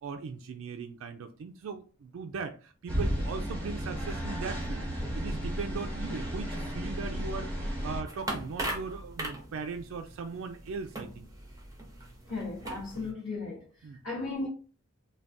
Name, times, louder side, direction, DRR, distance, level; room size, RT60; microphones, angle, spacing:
voice 1, 0.0-11.3 12.9-13.1 13.8-14.0, right 5 dB, 70° right, 0.3 m, -39 dB
sound 1, 2.9-8.0, equal, 5° left, 0.9 m, -33 dB
sound 2, 8.1-13.1, right 1 dB, 15° right, 0.5 m, -40 dB
voice 2, 12.3-13.7 14.0-14.5, left 3 dB, 65° left, 0.9 m, -35 dB
3.4 x 2.2 x 2.5 m
head